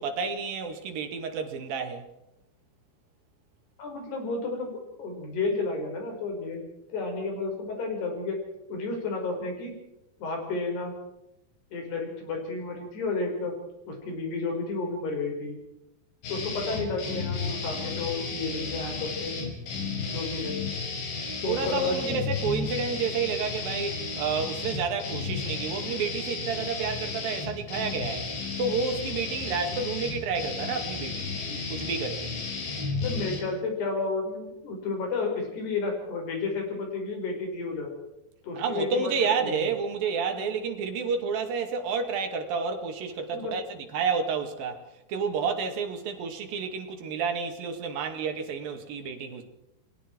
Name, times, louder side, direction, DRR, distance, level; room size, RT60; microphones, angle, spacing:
voice 1, 0.0-2.1 21.4-28.3 28.6-31.4 31.7-32.3 38.6-44.8 45.1-49.4, right 5 dB, 60° right, 3.6 m, -30 dB
voice 2, 3.8-8.4 8.7-9.8 10.2-11.0 11.7-13.5 13.9-15.6 16.3-19.4 20.1-20.6 21.4-22.2 31.5-31.6 33.0-37.9 38.4-39.6 40.4-40.5 43.3-43.5, left 3 dB, 65° left, 6.8 m, -32 dB
sound 1, 16.2-33.4, left 4 dB, 80° left, 6.1 m, -33 dB
30.0 x 21.5 x 4.6 m
omnidirectional pair, 5.0 m